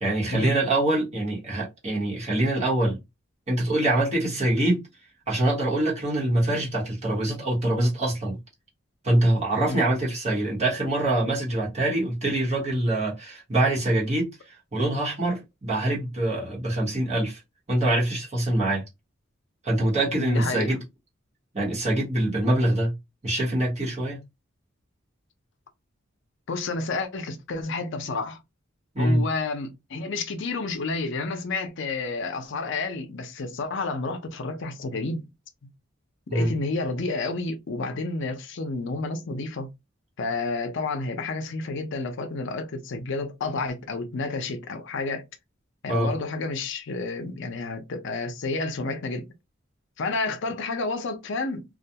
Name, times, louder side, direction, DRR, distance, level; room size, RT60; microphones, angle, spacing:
voice 1, 0.0-3.0 3.5-4.8 5.3-8.4 9.0-17.4 17.7-18.8 19.6-20.8 21.5-23.0 23.2-24.2 28.9-29.3 36.3-36.5 45.9-46.1, right 1 dB, 35° right, 1.0 m, -24 dB
voice 2, 20.2-20.8 26.5-28.4 29.0-35.3 36.3-39.7 40.2-45.3 45.8-49.2 50.0-51.6, left 3 dB, 60° left, 0.5 m, -30 dB
2.3 x 2.2 x 2.7 m
head